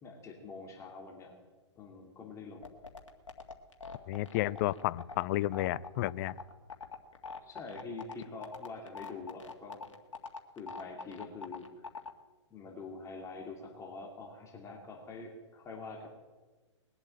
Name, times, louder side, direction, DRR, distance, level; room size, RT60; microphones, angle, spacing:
voice 1, 0.0-1.3 1.8-2.7 7.4-9.9 10.6-11.9 12.5-16.1, left 3 dB, 20° left, 1 dB, 2.5 m, -45 dB
sound 1, 2.6-12.1, left 4 dB, 85° left, 1.9 m, -43 dB
voice 2, 4.1-6.3, left 16 dB, 40° left, 21 dB, 0.5 m, -32 dB
20.5 x 8.0 x 8.8 m, 1.3 s
hypercardioid pair, 125°, 16 cm